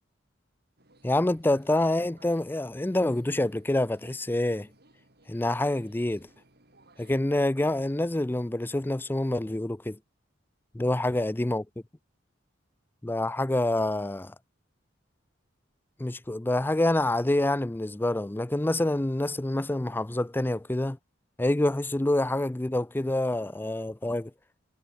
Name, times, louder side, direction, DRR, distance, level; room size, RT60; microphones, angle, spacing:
sound 1, 0.8-7.2, right 2 dB, 55° right, 7.0 m, -60 dB
voice 1, 1.0-4.7 5.3-6.3 7.0-10.0 10.7-11.7 13.0-14.3 16.0-21.0 21.4-24.3, left 1 dB, 10° left, 0.4 m, -27 dB
head